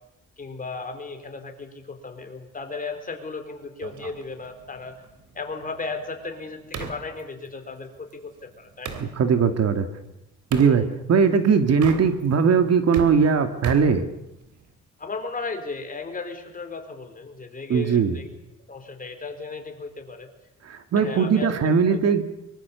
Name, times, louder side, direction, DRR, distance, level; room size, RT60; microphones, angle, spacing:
voice 1, 0.4-4.9 5.3-8.3 8.6-9.0 10.6-10.9 15.0-18.3 18.7-20.3 21.0-22.0, left 4 dB, 30° left, 6 dB, 4.0 m, -35 dB
sound 1, 3.8-9.1 10.5-10.8 11.7-12.4 12.7-14.7, right 6 dB, 80° right, 3.2 m, -37 dB
voice 2, 9.0-9.9 10.5-14.1 17.7-18.2 20.6-22.2, right 6 dB, 55° right, 8 dB, 2.2 m, -20 dB
24.5 x 24.0 x 7.0 m, 0.87 s
cardioid pair, 145°, 30 cm